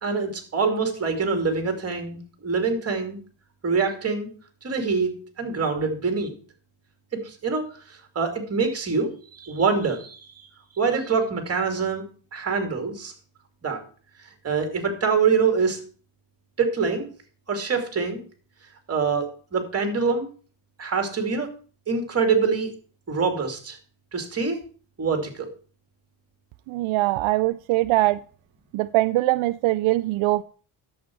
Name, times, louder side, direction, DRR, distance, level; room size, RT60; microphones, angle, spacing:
voice 1, 0.0-3.2 3.6-4.3 4.6-6.3 7.1-10.2 10.8-12.0 12.3-13.1 13.6-13.8 14.4-15.8 16.6-17.1 17.5-18.2 18.9-20.3 20.8-21.5 21.9-22.7 23.1-23.8 24.1-24.6 25.0-25.5, right 5 dB, 30° right, 4 dB, 2.5 m, -25 dB
voice 2, 26.7-28.2 28.7-30.4, right 18 dB, 80° right, 13 dB, 0.5 m, -22 dB
11.0 x 7.5 x 4.6 m, 0.41 s
cardioid pair, 125°, 47 cm